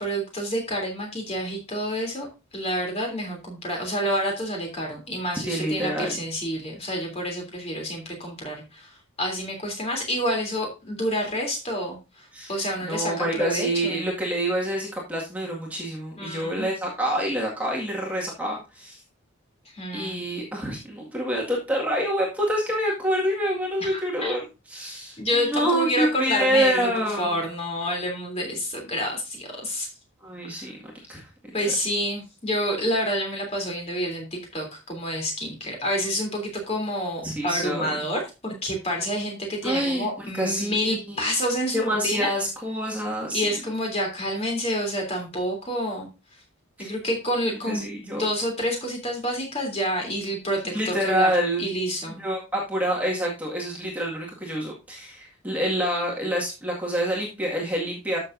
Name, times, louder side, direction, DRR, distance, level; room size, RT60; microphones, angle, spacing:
voice 1, 0.0-2.3 2.5-14.1 16.2-16.7 19.7-20.2 23.8-24.4 25.2-29.9 30.6-30.7 31.5-42.3 43.3-46.1 46.8-51.3 51.6-52.2, equal, 30° left, 1 dB, 3.2 m, -28 dB
voice 2, 5.4-6.2 12.3-12.5 12.9-19.0 19.9-24.4 24.7-27.3 30.2-30.8 31.1-31.3 37.2-38.0 39.6-41.2 41.7-43.5 46.8-46.9 47.6-48.2 50.7-51.7 52.1-58.2, equal, 5° right, -3 dB, 1.9 m, -27 dB
13.0 x 6.6 x 2.6 m, 0.28 s
head